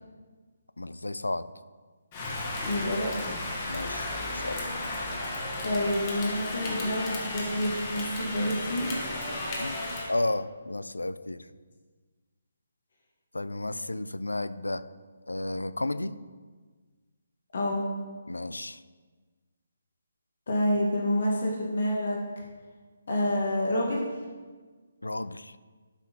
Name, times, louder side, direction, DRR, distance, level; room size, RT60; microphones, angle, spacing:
voice 1, 0.8-1.5 3.7-4.6 9.6-9.8 10.1-11.5 13.3-14.8 15.3-16.2 18.3-18.8 25.0-25.6, left 2 dB, 75° left, 14 dB, 0.4 m, -32 dB
Rain, 2.1-10.1, left 2 dB, 30° left, 1.4 m, -34 dB
voice 2, 2.7-3.4 5.6-8.9 17.5-17.9 20.5-22.2 23.1-24.1, left 1 dB, 55° left, -2 dB, 1.5 m, -28 dB
11.5 x 5.7 x 2.9 m, 1.4 s
figure-of-eight pair, 145°, 0 cm